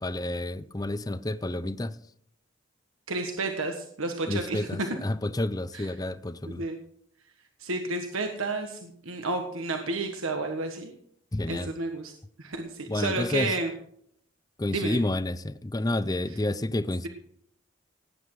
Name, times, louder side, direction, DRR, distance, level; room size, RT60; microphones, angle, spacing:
voice 1, 0.0-2.0 4.3-6.6 11.3-11.7 12.9-13.5 14.6-17.1, left 1 dB, 20° left, 0.5 m, -30 dB
voice 2, 3.1-4.7 5.7-5.9 6.4-6.8 7.6-10.9 11.5-12.1 12.4-13.7 14.7-15.0 16.3-16.4, right 3 dB, 80° right, 1.4 m, -31 dB
17.5 x 9.9 x 4.8 m
head